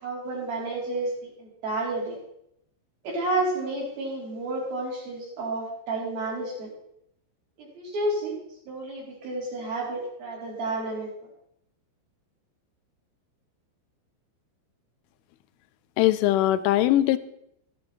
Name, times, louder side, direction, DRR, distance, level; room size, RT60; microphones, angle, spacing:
voice 1, 0.0-2.2 3.0-6.7 7.6-8.3 8.7-11.1, right 2 dB, 50° right, -4 dB, 5.6 m, -30 dB
voice 2, 16.0-17.2, left 14 dB, 85° left, 14 dB, 3.1 m, -21 dB
15.0 x 10.5 x 4.2 m, 0.77 s
omnidirectional pair, 5.4 m